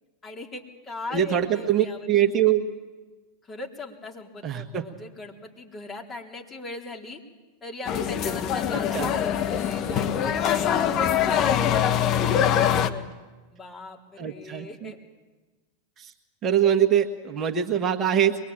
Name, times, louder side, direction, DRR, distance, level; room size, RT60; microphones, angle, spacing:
voice 1, 0.2-2.7 3.4-7.2 7.6-13.1 13.5-15.0, left 3 dB, 20° left, 1 dB, 3.7 m, -39 dB
voice 2, 1.1-2.6 4.4-4.8 8.9-9.1 14.2-14.9 16.0-16.1 16.4-18.5, right 9 dB, 30° right, 5 dB, 1.6 m, -23 dB
sound 1, 7.9-12.9, left 9 dB, 40° left, 1.3 m, -23 dB
23.5 x 21.0 x 8.9 m, 1.2 s
hypercardioid pair, 95°, 0 cm